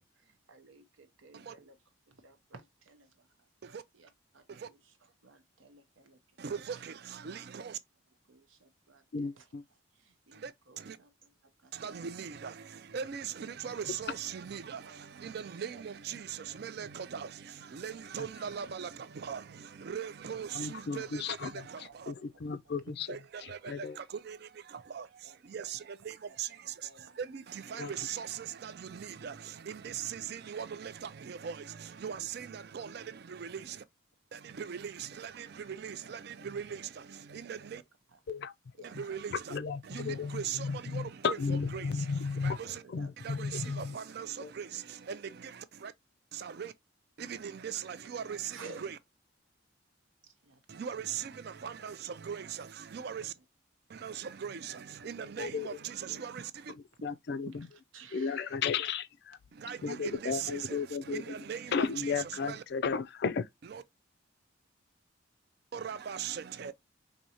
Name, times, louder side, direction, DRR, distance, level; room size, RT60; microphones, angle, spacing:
voice 1, 0.2-1.8 2.1-3.3 3.9-4.8 5.2-6.2 6.7-6.8 8.3-9.5 9.9-12.0 14.8-15.0 15.4-15.8 16.4-16.9 17.9-18.3 20.2-20.3 20.9-21.1 21.5-22.4 22.9-23.8 24.7-25.9 26.3-27.2 31.4-31.8 35.1-35.5 36.0-36.9 37.3-37.7 38.8-39.5 40.1-40.3 40.7-41.2 42.6-44.2 44.9-45.1 48.5-48.9 50.2-50.8 51.8-51.9 57.6-57.7 57.9-58.6, right 4 dB, 80° right, 0.8 m, -56 dB
voice 2, 6.4-7.8 10.3-11.0 11.7-22.1 23.1-33.8 34.3-37.8 38.8-39.6 39.8-42.8 43.2-45.9 46.3-46.7 47.2-49.0 50.7-53.3 53.9-56.7 59.5-62.6 63.6-63.8 65.7-66.7, right 7 dB, 50° right, 0.4 m, -40 dB
voice 3, 9.1-9.6 20.5-23.2 23.6-24.0 27.8-27.9 38.3-38.5 38.9-39.0 39.5-42.6 42.9-43.9 44.4-44.5 55.4-55.7 56.1-56.2 57.0-57.6 58.1-59.4 59.8-61.3 61.7-63.5, left 5 dB, 55° left, 0.3 m, -34 dB
4.4 x 2.7 x 2.7 m
head